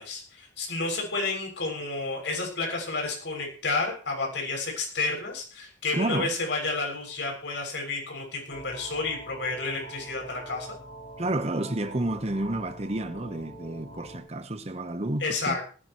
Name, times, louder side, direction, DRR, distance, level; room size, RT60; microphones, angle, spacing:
voice 1, 0.0-10.7 15.2-15.6, left 3 dB, 70° left, 6.8 m, -31 dB
voice 2, 5.9-6.3 11.2-15.6, right 1 dB, 35° right, 1.1 m, -30 dB
sound 1, 8.5-14.2, right 1 dB, 40° left, 5.4 m, -44 dB
19.5 x 16.0 x 3.1 m
head